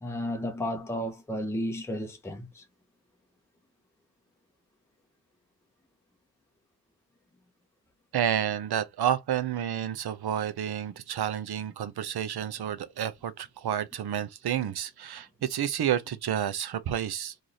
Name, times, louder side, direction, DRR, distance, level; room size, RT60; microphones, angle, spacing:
voice 1, 0.0-2.6, equal, 5° left, 0.7 m, -33 dB
voice 2, 8.1-17.3, right 10 dB, 60° right, 0.7 m, -30 dB
3.2 x 2.6 x 3.9 m
wide cardioid pair, 140°, 44 cm